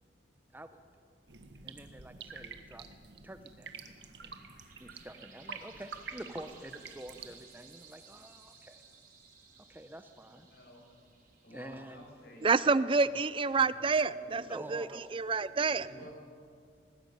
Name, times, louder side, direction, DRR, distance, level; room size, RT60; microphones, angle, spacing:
voice 1, 0.5-1.1 1.6-2.9 3.2-4.0 4.2-4.5 4.8-8.8 9.7-10.5 11.5-12.0 14.5-15.1, right 1 dB, 10° right, 9 dB, 0.8 m, -48 dB
sound 1, 1.3-7.4, right 5 dB, 75° right, 1.6 m, -48 dB
sound 2, 3.6-12.8, right 5 dB, 55° right, 5.0 m, -59 dB
voice 2, 10.5-10.8 11.4-12.5 14.2-14.4 15.8-16.1, equal, 65° left, 0 dB, 6.5 m, -52 dB
voice 3, 12.4-14.9 15.1-15.9, right 4 dB, 30° right, 16 dB, 0.4 m, -28 dB
19.5 x 18.5 x 9.4 m, 2.3 s
head